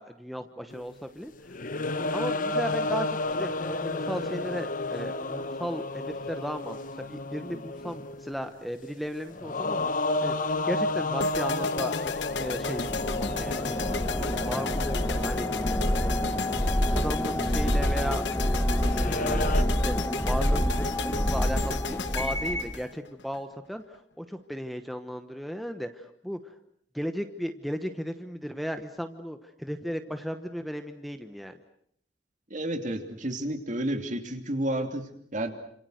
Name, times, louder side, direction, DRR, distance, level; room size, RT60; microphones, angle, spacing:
voice 1, 0.0-1.3 2.1-6.8 7.1-9.9 10.2-10.3 10.6-13.8 14.2-15.6 16.0-16.2 16.9-18.3 18.9-19.9 20.2-23.8 24.2-26.4 26.9-31.6, equal, ahead, 7 dB, 1.1 m, -35 dB
sound 1, 0.7-0.8 1.3-8.5 9.3-19.6, left 2 dB, 50° left, 1.1 m, -32 dB
sound 2, 11.2-23.4, left 5 dB, 90° left, 1.1 m, -35 dB
sound 3, 12.1-22.8, equal, 15° left, 1.6 m, -28 dB
voice 2, 32.5-35.5, right 1 dB, 45° right, 6 dB, 2.9 m, -31 dB
28.5 x 27.0 x 6.5 m, 0.67 s
head